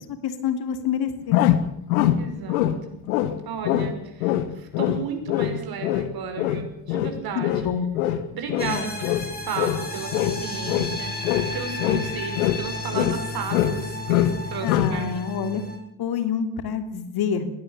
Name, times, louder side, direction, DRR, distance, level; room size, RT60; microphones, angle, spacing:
voice 1, 0.1-1.4 7.3-7.9 8.6-8.9 14.6-15.6 16.0-17.5, left 7 dB, 60° left, 8 dB, 3.0 m, -27 dB
sound 1, 1.3-2.8 3.1-3.4 3.6-3.9 4.2-9.8 10.1-11.0 11.2-12.7 12.9-13.8 14.1-14.4 14.7-15.0, left 12 dB, 85° left, 1.5 m, -23 dB
voice 2, 2.2-3.0 3.4-7.7 8.3-15.4, right 6 dB, 55° right, 5 dB, 6.3 m, -34 dB
sound 2, 8.6-15.8, left 2 dB, 20° left, 7.3 m, -33 dB
21.5 x 17.5 x 7.0 m, 0.75 s
hypercardioid pair, 65°, 43 cm